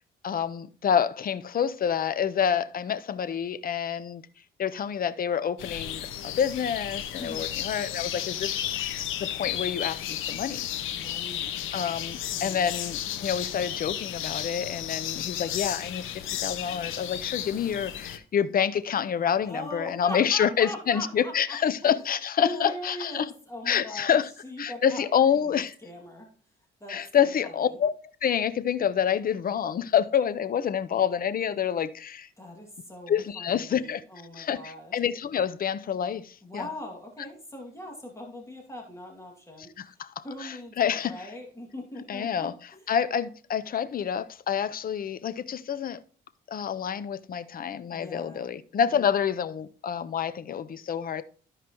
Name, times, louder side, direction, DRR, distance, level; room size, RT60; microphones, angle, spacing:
voice 1, 0.2-4.2 4.6-10.7 11.7-23.3 23.7-24.3 24.6-25.7 26.9-27.9 28.2-32.3 33.1-34.0 34.3-36.7 39.6-41.3 42.1-42.5 42.9-46.0 46.5-51.2, left 8 dB, 45° left, 0.6 m, -28 dB
sound 1, 5.6-18.2, left 11 dB, 85° left, 0.9 m, -33 dB
voice 2, 10.9-11.5 12.3-12.6 19.4-21.6 21.8-21.9 22.4-25.1 25.3-26.3 26.8-27.8 32.4-35.0 36.4-39.7 40.2-42.8 47.9-48.4 48.9-49.1, left 1 dB, 15° left, 2.3 m, -41 dB
13.5 x 4.9 x 3.0 m
cardioid pair, 90°, 20 cm